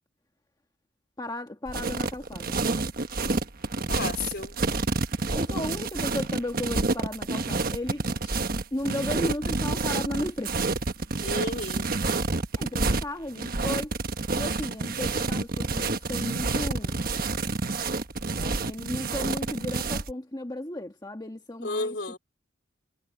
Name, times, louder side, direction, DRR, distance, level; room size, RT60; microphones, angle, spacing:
voice 1, 1.2-2.8 5.3-8.4 8.7-10.8 12.6-14.0 14.3-17.0 18.4-21.9, left 1 dB, 20° left, 1.3 m, -35 dB
sound 1, 1.7-20.1, right 3 dB, 50° right, 1.3 m, -28 dB
voice 2, 3.9-4.6 11.2-11.9 21.6-22.2, left 3 dB, 60° left, 4.2 m, -32 dB
head